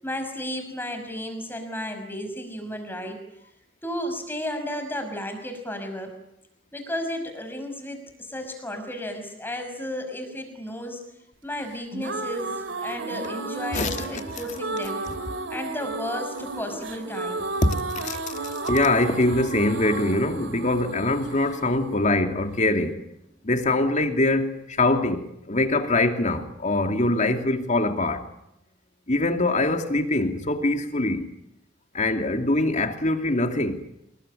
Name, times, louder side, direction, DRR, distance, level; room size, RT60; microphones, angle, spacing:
voice 1, 0.0-3.2 3.8-6.1 6.7-11.0 11.4-12.5 12.8-15.0 15.5-17.5 18.1-18.3, equal, 10° left, 5.7 m, -33 dB
sound 1, 11.7-22.7, right 3 dB, 65° right, 2.7 m, -33 dB
voice 2, 17.6-18.2 18.6-23.0 23.4-28.3 29.1-31.3 31.9-33.8, left 2 dB, 40° left, 2.6 m, -23 dB
27.5 x 21.0 x 9.9 m
head